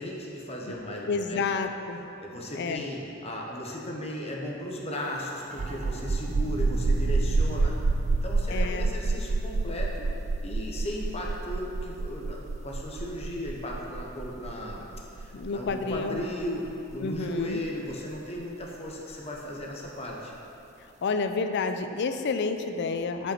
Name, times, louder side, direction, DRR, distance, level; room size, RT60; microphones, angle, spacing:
voice 1, 0.0-1.4 2.2-7.8 8.2-10.1 10.4-14.9 15.1-20.3, left 1 dB, 30° left, -1 dB, 0.9 m, -36 dB
voice 2, 1.1-2.0 2.5-2.8 8.5-8.9 15.3-16.2 17.0-17.6 21.0-23.3, left 4 dB, 55° left, 8 dB, 0.4 m, -29 dB
sound 1, 5.5-18.9, right 3 dB, 35° right, 0.3 m, -29 dB
7.7 x 5.3 x 4.4 m, 2.8 s
head